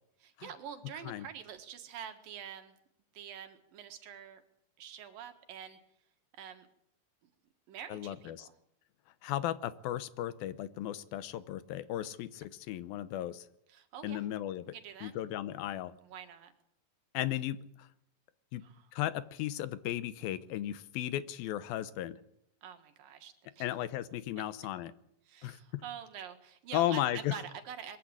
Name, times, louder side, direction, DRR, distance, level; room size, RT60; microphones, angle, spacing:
voice 1, 0.2-2.7 3.1-4.4 4.8-5.8 6.3-6.7 7.7-8.3 13.7-14.2 14.7-15.1 16.0-16.5 18.6-18.9 22.6-23.7 24.4-24.5 25.3-28.0, right 9 dB, 75° right, 6 dB, 3.4 m, -46 dB
voice 2, 7.9-8.5 9.2-13.5 14.0-14.7 15.0-15.9 17.1-17.9 18.5-18.6 18.9-22.2 23.6-24.9 25.4-25.8 26.7-27.4, left 13 dB, 85° left, 14 dB, 2.7 m, -35 dB
22.0 x 14.5 x 8.8 m, 0.74 s
omnidirectional pair, 4.1 m